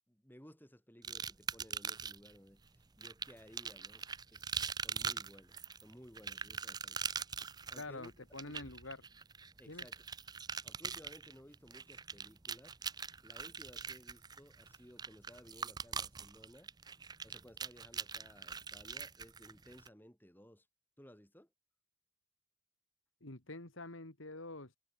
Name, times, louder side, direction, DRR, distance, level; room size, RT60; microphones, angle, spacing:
voice 1, 0.1-7.0 7.7-8.7 9.6-10.0 10.6-12.8 13.2-16.7 17.2-20.7 21.0-21.5, equal, 10° left, 3.6 m, -58 dB
sound 1, 1.0-2.3 3.0-19.9, right 6 dB, 20° right, 0.6 m, -42 dB
voice 2, 7.7-9.0 9.7-9.9 23.2-24.8, left 2 dB, 70° left, 2.8 m, -47 dB
head